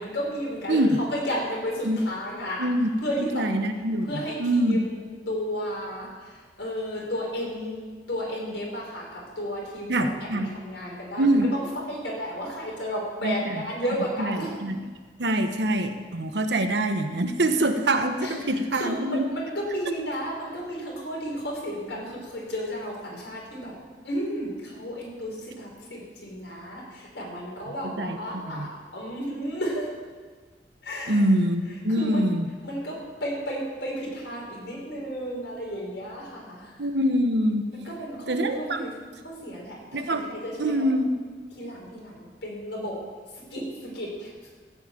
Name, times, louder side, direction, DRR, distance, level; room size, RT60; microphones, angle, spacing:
voice 1, 0.0-2.7 3.0-3.5 4.0-14.5 18.2-18.4 18.7-23.7 24.0-29.9 30.8-31.2 31.9-32.3 32.6-36.7 37.7-38.9 39.2-40.7 41.5-43.0 43.3-44.3, equal, 85° left, -4 dB, 4.9 m, -33 dB
voice 2, 0.7-1.0 1.8-2.0 2.6-2.9 3.3-4.8 9.9-10.5 11.2-11.5 13.2-13.6 14.2-14.9 15.2-19.3 27.7-28.7 31.1-32.5 36.8-37.7 38.3-38.8 39.9-40.3 40.6-41.2, right 1 dB, 75° right, 7 dB, 1.0 m, -25 dB
15.0 x 5.6 x 8.8 m, 1.5 s
head